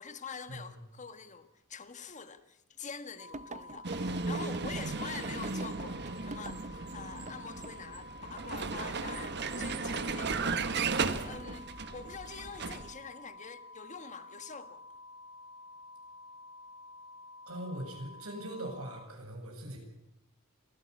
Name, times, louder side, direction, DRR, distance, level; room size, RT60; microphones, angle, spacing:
voice 1, 0.0-10.7 11.2-15.0, left 5 dB, 35° left, 1.5 m, -45 dB
sound 1, 3.2-19.1, left 2 dB, 75° left, 3.3 m, -51 dB
sound 2, 3.3-6.8 7.3-7.4 7.6-7.8, right 2 dB, 35° right, 0.8 m, -45 dB
Vehicle, 3.8-12.9, right 4 dB, 55° right, 1.4 m, -35 dB
voice 2, 17.5-19.8, right 1 dB, 85° right, 7.5 m, -41 dB
26.0 x 16.0 x 8.4 m
head